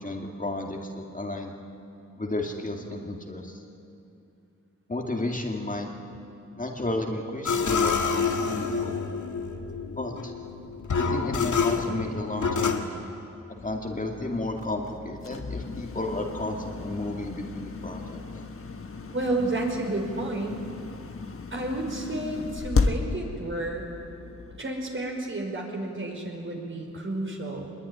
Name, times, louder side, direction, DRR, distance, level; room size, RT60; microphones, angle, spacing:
voice 1, 0.0-1.5 2.2-3.6 4.9-5.9 6.6-9.0 9.9-10.3 10.9-12.8 13.6-18.2, left 2 dB, 25° left, 1 dB, 2.3 m, -32 dB
sound 1, 7.5-12.8, left 5 dB, 85° left, 1.9 m, -27 dB
sound 2, 13.6-24.6, left 4 dB, 50° left, 1.4 m, -34 dB
voice 2, 19.1-20.6 21.5-23.9 24.6-27.7, right 2 dB, 45° right, 1 dB, 5.1 m, -31 dB
24.0 x 21.5 x 10.0 m, 2.7 s
wide cardioid pair, 100°, 29 cm